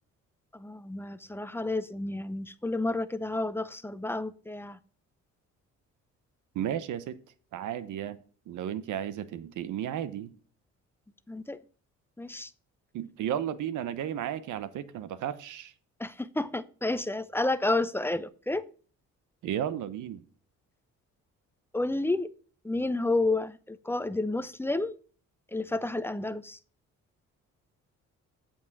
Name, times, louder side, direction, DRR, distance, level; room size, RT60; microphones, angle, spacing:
voice 1, 0.5-4.8 11.3-11.6 12.2-12.5 16.0-18.6 21.7-22.3 22.6-24.9 25.5-26.6, left 2 dB, 10° left, 0.7 m, -30 dB
voice 2, 6.5-7.2 7.5-8.2 8.5-10.3 12.9-15.7 19.4-20.2, right 10 dB, 80° right, 1.0 m, -33 dB
8.4 x 7.4 x 6.0 m
cardioid pair, 90°, 30 cm